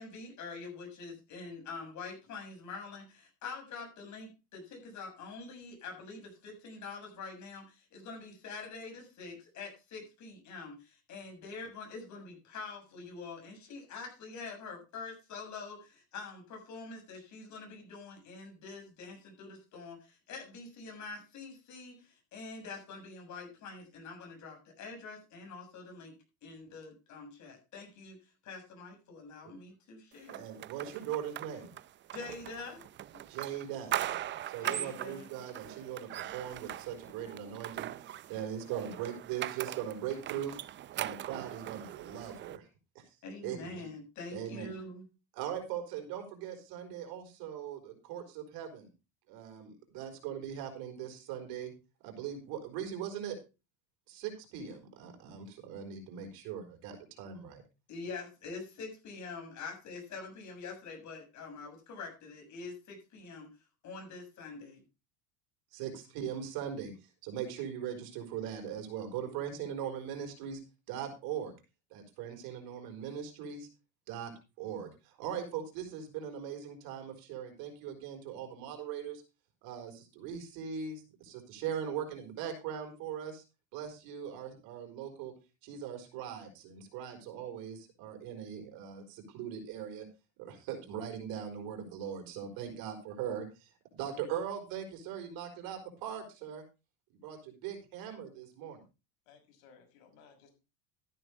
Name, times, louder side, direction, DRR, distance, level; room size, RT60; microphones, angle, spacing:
voice 1, 0.0-26.2 26.4-28.2 28.4-30.5 32.1-32.8 34.6-35.3 43.2-45.0 57.9-63.5 63.8-64.8, left 4 dB, 45° left, 3 dB, 7.3 m, -45 dB
sound 1, 30.3-42.6, right 12 dB, 30° right, 0.5 m, -40 dB
voice 2, 30.3-31.7 33.3-34.1 34.5-40.6 40.9-42.7 42.9-43.2 43.4-43.6 44.3-44.7 45.3-48.9 49.3-51.7 52.0-53.4 54.1-57.6 65.7-66.9 67.2-70.6 70.9-71.5 71.9-73.7 74.1-74.3 74.6-79.2 79.6-83.4 83.7-85.3 85.6-90.1 90.4-96.6 97.1-98.8, right 9 dB, 65° right, 5 dB, 5.0 m, -40 dB
voice 3, 99.3-100.5, left 6 dB, 80° left, 4 dB, 6.0 m, -60 dB
13.5 x 11.0 x 3.4 m, 0.28 s
supercardioid pair, 125°, 39 cm